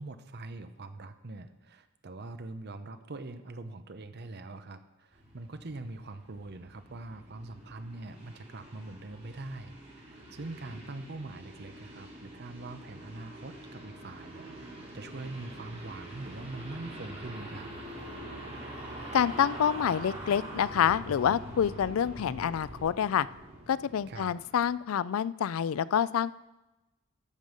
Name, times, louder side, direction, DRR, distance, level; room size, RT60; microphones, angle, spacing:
voice 1, 0.0-17.7 24.1-24.3, right 2 dB, 50° right, 10 dB, 0.8 m, -43 dB
sound 1, 5.1-24.7, right 1 dB, 35° right, 4.3 m, -45 dB
voice 2, 19.1-23.3 23.7-26.3, left 8 dB, 80° left, 18 dB, 0.4 m, -27 dB
13.5 x 5.4 x 6.5 m, 1.0 s
head